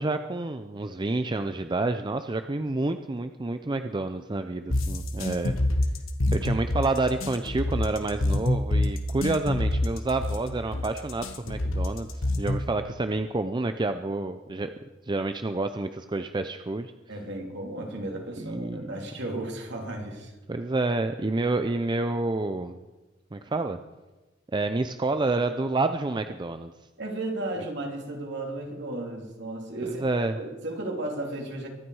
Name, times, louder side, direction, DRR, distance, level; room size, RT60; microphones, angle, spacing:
voice 1, 0.0-5.6 6.3-14.7 15.0-16.9 18.4-19.0 20.5-22.8 23.3-23.8 24.5-26.7 29.8-30.4, right 2 dB, 25° right, 8 dB, 0.5 m, -29 dB
sound 1, 4.7-12.7, left 1 dB, 85° left, 1.4 m, -26 dB
voice 2, 17.1-20.3 27.0-30.1 30.3-31.7, right 2 dB, 60° right, 1 dB, 2.8 m, -34 dB
23.5 x 9.2 x 4.7 m, 1.1 s
head